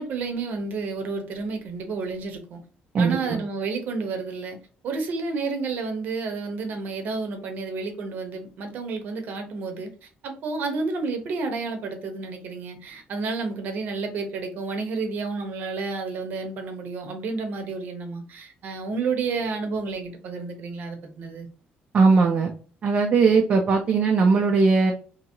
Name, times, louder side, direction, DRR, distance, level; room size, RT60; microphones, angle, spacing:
voice 1, 0.0-2.6 3.0-4.6 4.8-9.9 10.2-21.5, right 4 dB, 55° right, 0.8 m, -30 dB
voice 2, 2.9-3.5 21.9-22.5 22.8-24.9, right 4 dB, 35° right, 0.4 m, -19 dB
2.8 x 2.7 x 2.7 m
cardioid pair, 175°, 4 cm